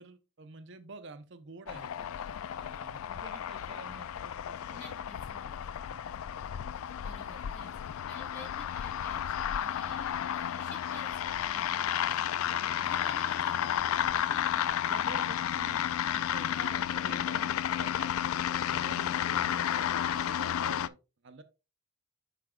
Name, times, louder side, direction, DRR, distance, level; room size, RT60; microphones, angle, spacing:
voice 1, 0.0-4.8 5.9-6.1 12.5-12.7 14.9-21.0 21.2-21.4, right 3 dB, 55° right, 0.6 m, -49 dB
sound 1, 1.7-20.9, left 10 dB, 75° left, 0.3 m, -32 dB
voice 2, 4.7-5.6 7.0-7.7 8.1-13.9 14.3-15.2 16.5-17.3, left 2 dB, 55° left, 3.6 m, -50 dB
8.5 x 5.8 x 2.3 m
head